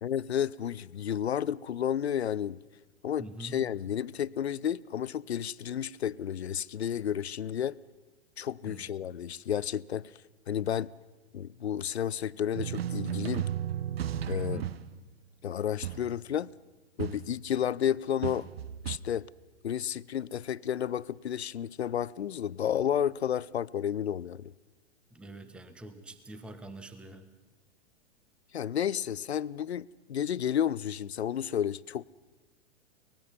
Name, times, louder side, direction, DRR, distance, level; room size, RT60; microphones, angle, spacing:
voice 1, 0.0-2.6 3.0-7.8 8.4-10.1 10.5-10.9 11.3-13.5 14.3-14.6 15.4-16.5 17.0-18.5 18.8-19.3 19.6-24.5 28.5-32.1, left 9 dB, 70° left, 0.6 m, -31 dB
voice 2, 3.2-3.6 8.6-9.2 14.3-14.8 25.1-27.3, right 1 dB, 5° right, 0.9 m, -45 dB
sound 1, 12.5-15.0 15.8-16.2 17.0-17.5 18.2-19.0, right 10 dB, 60° right, 0.7 m, -34 dB
24.0 x 19.5 x 5.6 m
figure-of-eight pair, 105°, 34 cm